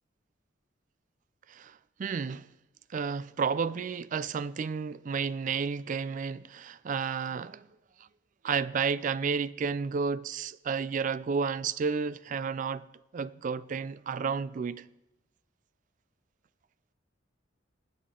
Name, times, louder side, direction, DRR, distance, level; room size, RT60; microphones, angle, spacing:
voice 1, 2.0-2.5 2.9-7.6 8.4-12.9 13.1-14.9, right 5 dB, 40° right, 0.3 m, -31 dB
20.5 x 8.4 x 3.8 m
head